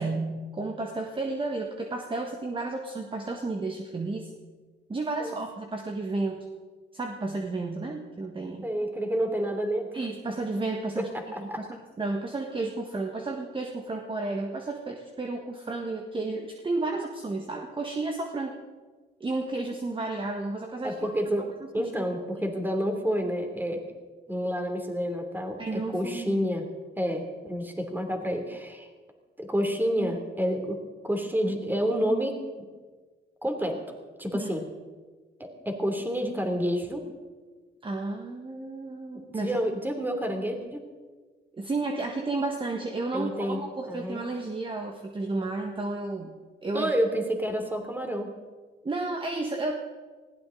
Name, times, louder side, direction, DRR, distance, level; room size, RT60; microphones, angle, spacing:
voice 1, 0.0-4.3 4.9-6.5 6.9-8.7 9.9-11.1 11.4-18.6 19.2-21.0 21.8-21.9 25.6-26.4 34.3-34.5 37.8-39.6 41.5-46.3 46.6-46.9 48.8-49.8, right 3 dB, 25° right, 3 dB, 1.5 m, -32 dB
voice 2, 8.6-10.0 11.0-11.6 20.8-23.8 24.3-26.7 27.0-28.9 29.4-30.8 31.0-32.7 33.4-33.8 34.2-34.6 35.4-37.0 39.1-40.8 43.1-43.6 43.9-44.2 46.7-48.3, equal, 10° right, 4 dB, 3.0 m, -29 dB
20.0 x 16.0 x 3.9 m, 1.4 s
cardioid pair, 90°, 20 cm